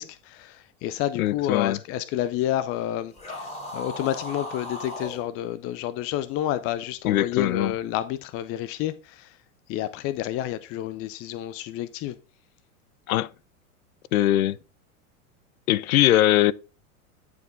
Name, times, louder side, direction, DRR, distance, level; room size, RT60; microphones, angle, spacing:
voice 1, 0.0-9.4 9.7-12.2, left 12 dB, 35° left, 0.5 m, -30 dB
voice 2, 1.2-1.8 7.0-7.7 13.1-13.3 14.1-14.6 15.7-16.5, left 14 dB, 75° left, 0.6 m, -21 dB
sound 1, 3.1-5.2, left 1 dB, 15° left, 3.6 m, -36 dB
10.5 x 4.8 x 3.8 m
hypercardioid pair, 100°, 43 cm